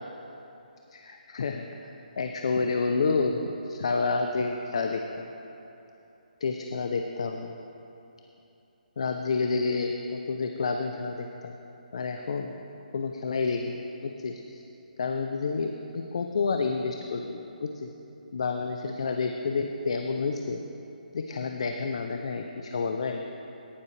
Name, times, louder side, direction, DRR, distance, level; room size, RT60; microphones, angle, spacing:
voice 1, 0.9-5.3 6.4-7.5 9.0-11.6 11.9-12.5 12.9-14.6 15.0-17.9 18.3-20.6 21.1-23.2, left 4 dB, 40° left, 4 dB, 0.5 m, -29 dB
18.0 x 7.3 x 3.2 m, 3.0 s
hypercardioid pair, 175°, 5 cm